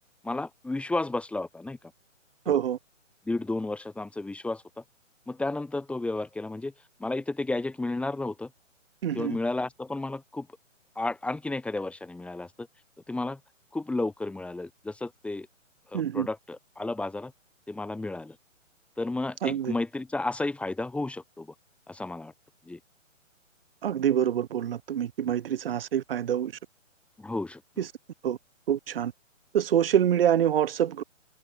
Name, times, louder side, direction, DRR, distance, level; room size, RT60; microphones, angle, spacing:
voice 1, 0.2-1.8 2.5-2.6 3.3-4.8 5.3-6.7 7.0-8.5 9.1-10.5 11.0-12.7 13.1-13.4 13.7-15.5 15.9-17.3 17.7-18.4 19.0-21.5 21.9-22.3 22.7-22.8 27.2-27.8, left 2 dB, 5° left, 2.4 m, -32 dB
voice 2, 2.5-2.8 9.0-9.4 15.9-16.3 19.4-19.7 23.8-26.5 27.8-27.9 28.2-28.4 28.7-29.1 29.5-31.0, right 10 dB, 45° right, 1.2 m, -26 dB
open air
figure-of-eight pair, 140°, 39 cm